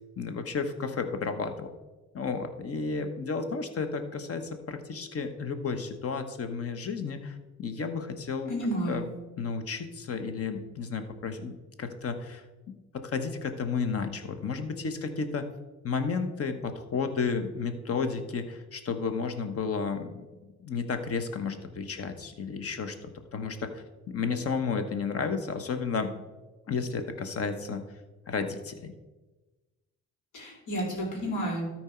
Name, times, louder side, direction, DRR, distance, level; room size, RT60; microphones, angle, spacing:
voice 1, 0.2-1.7 2.1-8.5 8.9-9.1 9.4-12.4 12.9-15.4 15.8-20.3 20.6-26.2 26.7-27.8 28.3-28.9, left 5 dB, 50° left, 8 dB, 1.1 m, -32 dB
voice 2, 8.5-9.0 30.3-31.7, right 1 dB, 80° left, -1 dB, 3.3 m, -31 dB
13.0 x 4.5 x 4.5 m, 1.2 s
cardioid pair, 90°, 30 cm